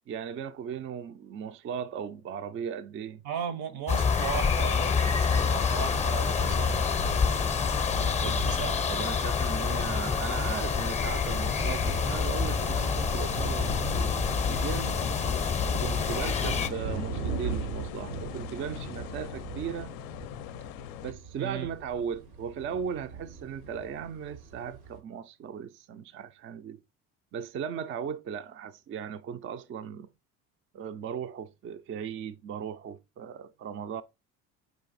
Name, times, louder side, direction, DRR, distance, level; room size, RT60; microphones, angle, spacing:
voice 1, 0.1-3.2 8.2-8.4 8.9-14.2 14.5-15.0 15.8-20.0 21.0-26.8 27.3-30.1 30.7-34.0, right 7 dB, 35° right, 0.4 m, -37 dB
voice 2, 3.2-6.9 7.9-8.8 21.4-21.7, right 8 dB, 70° right, 1.0 m, -36 dB
sound 1, 3.9-16.7, left 6 dB, 20° left, 0.6 m, -27 dB
sound 2, 6.4-25.0, right 5 dB, 90° right, 1.4 m, -40 dB
sound 3, 10.6-21.1, left 14 dB, 65° left, 0.5 m, -41 dB
4.7 x 2.5 x 3.9 m
supercardioid pair, 75°, 38 cm